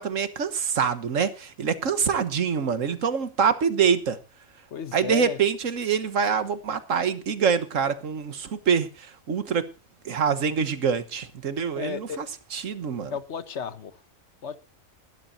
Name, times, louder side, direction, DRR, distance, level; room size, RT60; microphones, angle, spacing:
voice 1, 0.0-4.2 4.9-9.7 10.0-12.2 12.5-13.1, right 6 dB, 70° right, 1.6 m, -25 dB
voice 2, 4.7-5.4 11.7-12.2 13.1-14.0 14.4-14.6, left 6 dB, 60° left, 1.2 m, -34 dB
20.5 x 12.5 x 2.7 m
omnidirectional pair, 1.4 m